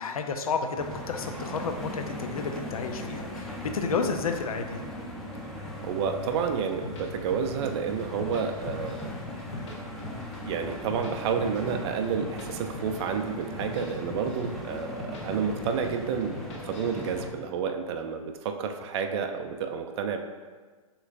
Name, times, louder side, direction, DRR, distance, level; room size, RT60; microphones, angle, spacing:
voice 1, 0.0-4.8, left 5 dB, 75° left, 6 dB, 0.6 m, -31 dB
sound 1, 0.8-17.3, left 1 dB, ahead, 0.6 m, -39 dB
voice 2, 5.6-9.1 10.4-20.2, right 6 dB, 45° right, 5 dB, 0.5 m, -30 dB
sound 2, 6.3-7.7 8.0-9.1 9.4-10.4 10.7-12.5 12.7-13.1 13.4-15.2 15.5-15.9 16.2-17.3, left 3 dB, 55° left, 0.9 m, -41 dB
6.2 x 3.0 x 2.5 m, 1.5 s
hypercardioid pair, 120°, 19 cm